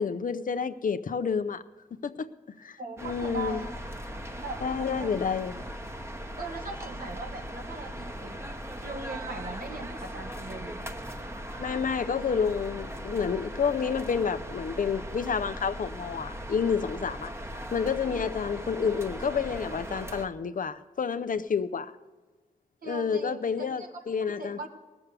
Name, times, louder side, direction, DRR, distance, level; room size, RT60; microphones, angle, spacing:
voice 1, 0.0-1.6 1.9-2.3 2.6-3.6 4.6-5.6 11.6-17.3 17.7-21.9 22.9-24.7, left 6 dB, 65° left, 0.6 m, -29 dB
voice 2, 2.8-3.7 4.3-5.1 5.6-5.7 6.4-8.4 8.8-10.8 18.0-18.2 22.8-24.0 24.3-24.7, right 2 dB, 70° right, 1.9 m, -40 dB
sound 1, 3.0-20.3, equal, 15° right, 1.0 m, -39 dB
18.5 x 7.0 x 6.8 m
cardioid pair, 60°, 15 cm